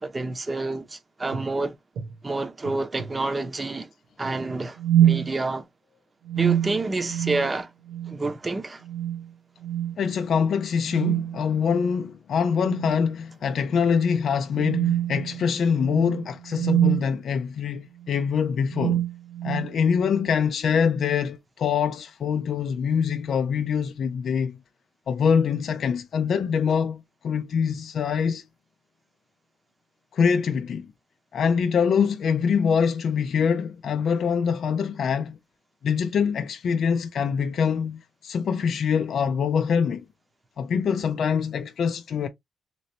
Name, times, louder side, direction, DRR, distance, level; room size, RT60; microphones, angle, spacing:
voice 1, 0.0-1.7 2.2-3.9 4.2-5.6 6.3-7.7 8.1-8.8, right 2 dB, 30° right, 0.7 m, -28 dB
sound 1, 1.3-1.5 2.0-2.1 2.7-3.2 4.8-5.3 6.3-7.5 7.9-8.2 8.8-9.3 9.6-9.9 10.9-11.4 12.6-13.1 13.5-13.7 14.5-17.1 18.0-18.2 18.7-19.7, right 11 dB, 90° right, 0.8 m, -25 dB
voice 2, 10.0-19.0 19.4-24.6 25.1-28.4 30.1-30.9 31.3-35.4 35.8-40.0 40.6-42.3, left 6 dB, 70° left, 0.4 m, -24 dB
3.0 x 3.0 x 2.7 m
cardioid pair, 70°, 0 cm